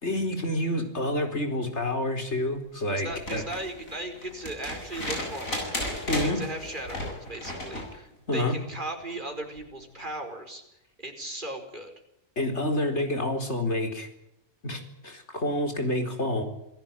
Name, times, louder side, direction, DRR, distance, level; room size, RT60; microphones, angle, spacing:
voice 1, 0.0-3.6 6.1-6.4 8.3-8.6 12.4-14.1 14.6-16.4, left 1 dB, 55° left, 5 dB, 4.6 m, -28 dB
voice 2, 2.9-5.7 6.1-10.6 11.0-11.9, right 1 dB, 35° right, 4 dB, 5.1 m, -37 dB
sound 1, 3.1-7.9 9.6-9.7, left 1 dB, 85° left, 8.7 m, -34 dB
27.5 x 17.5 x 9.0 m, 0.83 s
omnidirectional pair, 1.4 m